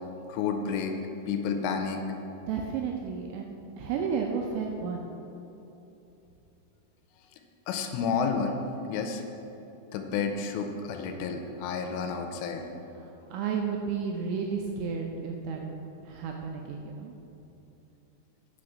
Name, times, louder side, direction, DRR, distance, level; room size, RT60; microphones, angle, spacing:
voice 1, 0.3-0.9 1.3-2.0 7.7-8.6 8.9-9.2 9.9-12.6, left 5 dB, 85° left, 5 dB, 3.1 m, -30 dB
voice 2, 2.5-5.1 13.0-15.8 16.0-17.1, right 6 dB, 85° right, 1 dB, 2.7 m, -32 dB
9.4 x 6.4 x 5.9 m, 3.0 s
omnidirectional pair, 5.9 m